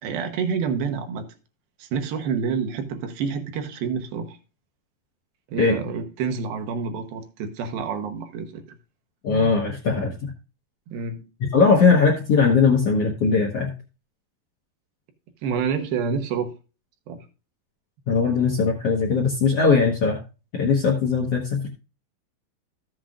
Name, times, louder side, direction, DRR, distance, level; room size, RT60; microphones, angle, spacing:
voice 1, 0.0-1.3 1.8-4.4 5.5-8.6 9.3-9.5 10.9-11.2 15.4-16.5 17.1-17.2, right 6 dB, 80° right, 2.9 m, -28 dB
voice 2, 9.2-10.3 11.5-13.7 18.1-20.2 20.5-21.7, left 5 dB, 65° left, 1.5 m, -20 dB
14.0 x 7.7 x 2.5 m
omnidirectional pair, 4.3 m